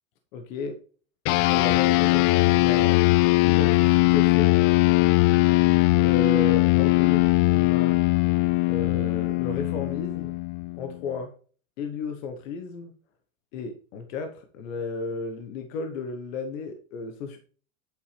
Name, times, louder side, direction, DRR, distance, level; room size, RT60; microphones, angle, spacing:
voice 1, 0.3-0.8 1.5-3.0 3.4-4.6 6.0-8.0 8.7-10.4 10.7-11.3 11.8-12.9 13.5-17.4, left 4 dB, 70° left, 5 dB, 1.4 m, -34 dB
sound 1, 1.3-11.0, left 22 dB, 45° left, 0.5 m, -20 dB
8.4 x 8.3 x 3.4 m, 0.42 s
hypercardioid pair, 110°, 41 cm